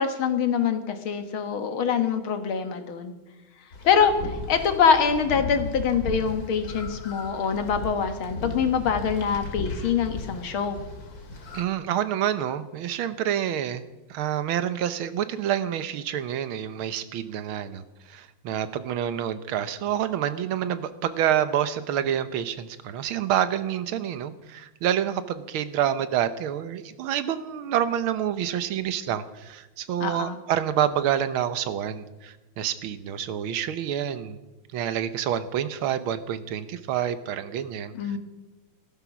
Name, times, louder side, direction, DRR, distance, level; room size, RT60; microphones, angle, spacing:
voice 1, 0.0-3.1 3.8-10.8 30.0-30.4 37.9-38.2, left 6 dB, 80° left, 8 dB, 2.2 m, -24 dB
sound 1, 3.7-11.6, left 2 dB, 50° left, 2.3 m, -36 dB
voice 2, 11.5-13.8 14.1-34.4 34.7-38.2, right 10 dB, 85° right, 13 dB, 1.7 m, -28 dB
15.5 x 13.0 x 6.1 m, 1.1 s
omnidirectional pair, 2.2 m